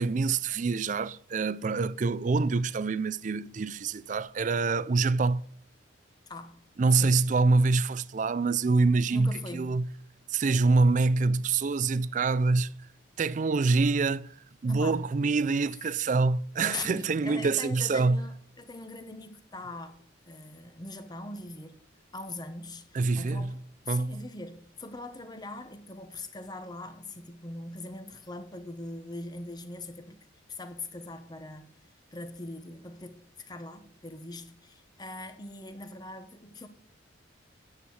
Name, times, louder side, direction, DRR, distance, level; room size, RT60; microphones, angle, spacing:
voice 1, 0.0-5.4 6.8-9.9 10.3-12.7 13.2-14.3 14.6-18.2 22.9-23.5 23.9-24.2, right 3 dB, 40° right, 0.4 m, -25 dB
voice 2, 6.3-6.6 7.0-7.2 9.1-9.8 14.7-15.1 16.6-20.0 20.3-21.8 22.1-30.2 30.5-31.7 32.1-36.7, left 2 dB, 20° left, 1.0 m, -41 dB
9.8 x 8.1 x 4.7 m
head